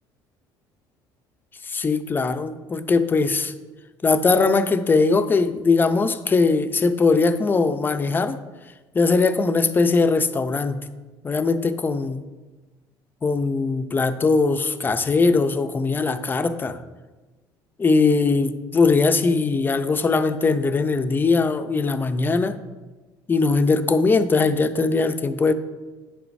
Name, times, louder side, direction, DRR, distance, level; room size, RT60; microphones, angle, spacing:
voice 1, 1.6-3.5 4.0-8.4 8.9-10.8 11.2-12.2 13.2-16.8 17.8-22.6 23.3-25.5, left 4 dB, 20° left, 10 dB, 0.5 m, -20 dB
9.6 x 7.9 x 2.6 m, 1.2 s
cardioid pair, 105°, 9 cm